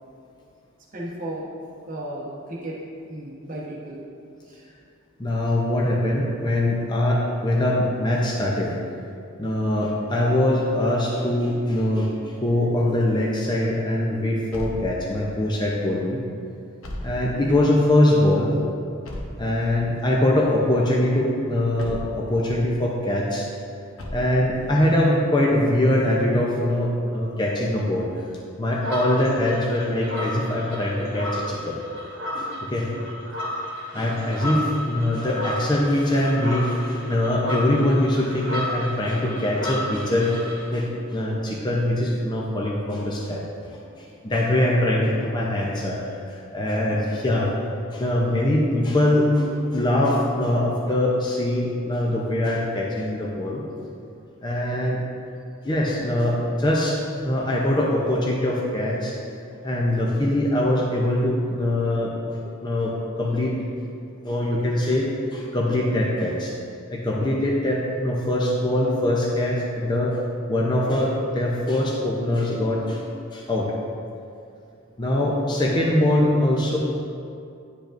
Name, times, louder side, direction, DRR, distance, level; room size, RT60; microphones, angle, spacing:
voice 1, 0.9-1.4 1.9-2.8 3.1-4.0 4.5-4.6 34.4-34.7, right 1 dB, 40° right, -5 dB, 1.0 m, -34 dB
voice 2, 5.2-8.7 9.4-16.2 17.0-18.5 19.4-23.5 24.1-28.1 28.6-31.8 32.3-32.9 33.9-40.4 40.7-43.4 43.7-47.5 47.9-53.6 54.4-55.0 55.6-59.2 59.6-62.9 63.2-63.6 64.2-66.5 66.9-70.2 70.5-73.0 73.3-73.7 75.0-76.8, left 1 dB, 20° left, -3 dB, 0.6 m, -23 dB
sound 1, 14.5-15.5 16.8-17.8 19.0-20.0 21.8-22.6 24.0-24.8, left 1 dB, 70° left, 0.9 m, -36 dB
sound 2, 28.7-40.7, left 1 dB, 60° right, 1.3 m, -33 dB
10.0 x 5.1 x 2.5 m, 2.5 s
head